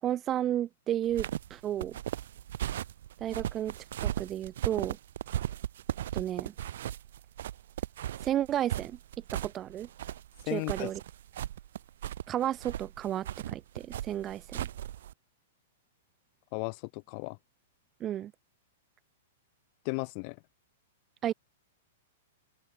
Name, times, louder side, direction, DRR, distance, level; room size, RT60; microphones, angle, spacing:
voice 1, 0.0-2.0 3.2-3.8 4.0-5.0 6.1-6.5 8.2-9.0 9.3-9.9 10.5-11.0 12.3-14.7 18.0-18.3 21.2-21.3, right 11 dB, 30° right, 7.0 m, -32 dB
sound 1, 1.1-15.1, right 11 dB, 70° right, 5.7 m, -37 dB
voice 2, 10.5-10.9 16.5-17.4 19.8-20.4, left 40 dB or more, 45° left, 4.3 m, -35 dB
open air
hypercardioid pair, 120°, 0 cm